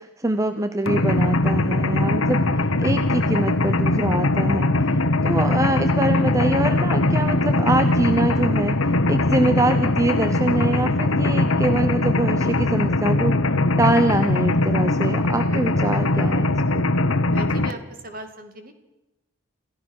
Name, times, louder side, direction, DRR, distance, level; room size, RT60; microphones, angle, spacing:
voice 1, 0.0-16.9, right 1 dB, 15° right, 9 dB, 0.8 m, -24 dB
Mechanisms, 0.9-17.7, left 2 dB, 80° left, 1.2 m, -21 dB
voice 2, 17.3-18.7, right 2 dB, 40° right, 7 dB, 2.6 m, -38 dB
27.5 x 15.5 x 6.6 m, 0.96 s
head